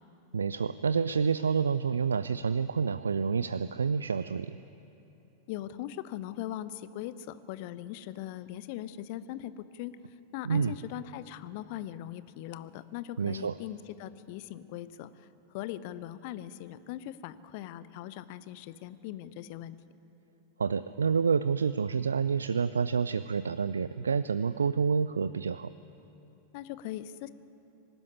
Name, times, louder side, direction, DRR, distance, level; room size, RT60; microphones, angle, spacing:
voice 1, 0.3-4.6 10.4-10.7 13.2-13.5 20.6-25.7, right 6 dB, 70° right, 15 dB, 0.4 m, -28 dB
voice 2, 5.5-10.0 10.3-19.8 26.5-27.3, left 13 dB, 45° left, 15 dB, 0.8 m, -40 dB
25.0 x 12.5 x 9.5 m, 2.9 s
figure-of-eight pair, 90°, 0 cm